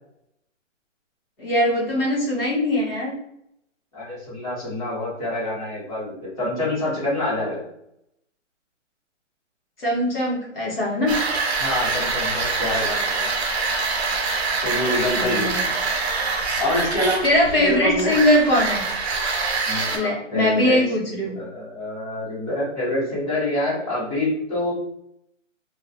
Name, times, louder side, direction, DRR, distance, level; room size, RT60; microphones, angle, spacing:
voice 1, 1.4-3.1 9.8-11.1 15.1-15.6 17.2-18.8 19.9-21.4, left 1 dB, 50° left, -5 dB, 1.0 m, -21 dB
voice 2, 3.9-7.6 11.6-13.3 14.6-15.5 16.6-17.2 17.5-18.1 19.6-20.8 21.0-24.7, left 1 dB, 30° left, -10 dB, 1.3 m, -26 dB
sound 1, 11.1-20.0, right 4 dB, 55° right, 0.6 m, -25 dB
2.6 x 2.3 x 2.4 m, 0.76 s
hypercardioid pair, 180°, 38 cm